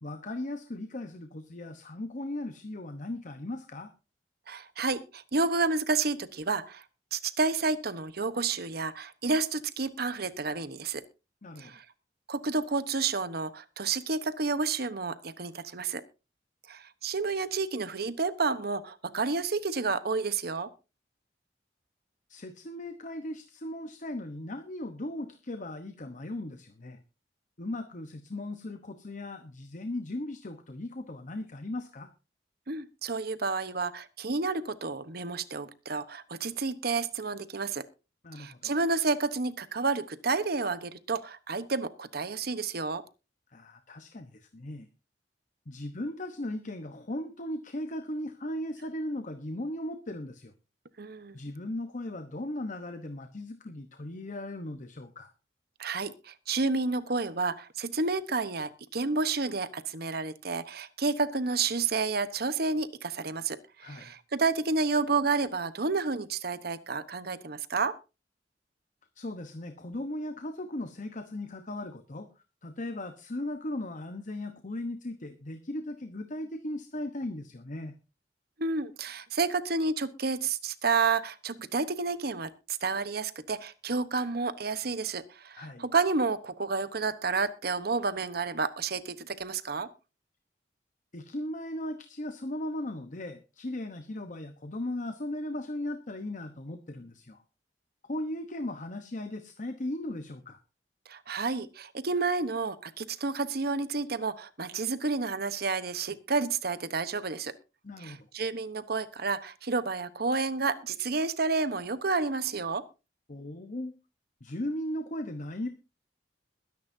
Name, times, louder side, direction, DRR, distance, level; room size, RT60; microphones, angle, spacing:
voice 1, 0.0-3.9 11.4-11.8 22.3-27.0 27.6-32.1 38.2-38.7 43.5-44.9 45.7-50.5 51.3-55.3 63.8-64.1 69.1-72.3 72.6-78.0 85.6-85.9 91.1-97.4 98.1-100.6 107.8-108.3 113.3-114.0 114.4-115.7, left 1 dB, 45° left, 8 dB, 1.1 m, -37 dB
voice 2, 4.5-6.8 7.1-11.0 11.6-11.8 12.3-16.0 16.7-20.7 32.7-37.8 38.3-43.0 51.0-51.4 55.8-68.0 78.6-89.9 101.1-107.5 108.0-112.8, right 4 dB, 60° right, 13 dB, 1.1 m, -30 dB
21.5 x 10.5 x 2.7 m, 0.30 s
head